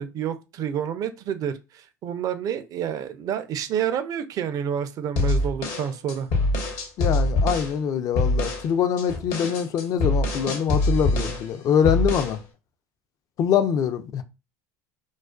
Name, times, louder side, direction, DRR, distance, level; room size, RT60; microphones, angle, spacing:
voice 1, 0.0-6.3, right 8 dB, 45° right, 0.4 m, -29 dB
sound 1, 5.2-7.7 8.2-8.7 9.0-11.5 11.8-12.4, left 2 dB, 60° left, 0.8 m, -24 dB
voice 2, 7.0-12.4 13.4-14.2, left 8 dB, 45° left, 0.4 m, -24 dB
2.4 x 2.3 x 2.2 m
hypercardioid pair, 85°, 8 cm